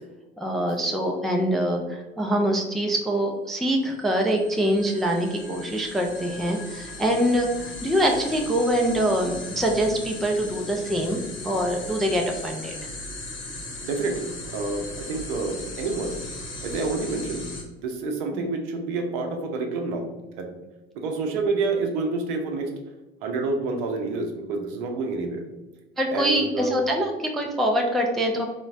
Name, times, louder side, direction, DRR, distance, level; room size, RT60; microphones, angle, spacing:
voice 1, 0.4-7.5 7.8-12.7 18.3-18.4 26.0-28.4, equal, ahead, 1 dB, 0.3 m, -24 dB
sound 1, 4.0-17.6, left 2 dB, 40° left, 1.0 m, -38 dB
voice 2, 13.8-16.1 16.6-17.4 17.8-20.1 20.4-20.5 20.9-22.7 23.2-25.4 26.1-26.8, right 3 dB, 65° right, 3 dB, 0.6 m, -28 dB
3.7 x 2.1 x 2.4 m, 1.1 s
figure-of-eight pair, 60°, 30 cm